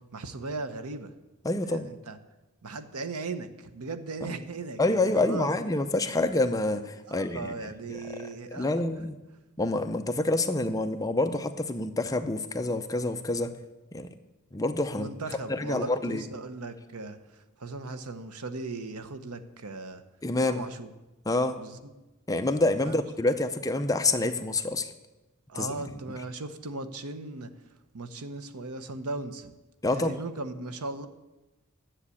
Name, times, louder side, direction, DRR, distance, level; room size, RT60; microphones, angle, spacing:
voice 1, 0.1-1.1 1.6-2.2 2.6-5.5 7.1-8.7 14.9-20.0 20.4-20.9 21.6-21.9 22.8-23.0 25.5-27.5 27.9-29.5 29.9-31.1, right 3 dB, 90° right, 10 dB, 0.9 m, -37 dB
voice 2, 1.4-1.9 4.2-4.4 4.8-9.1 9.6-13.5 13.9-14.1 14.5-15.1 15.5-16.2 20.2-20.7 21.3-21.6 22.3-24.9 25.5-25.7 29.8-30.2, left 2 dB, 15° left, 8 dB, 0.5 m, -27 dB
9.9 x 7.3 x 8.4 m, 1.1 s
head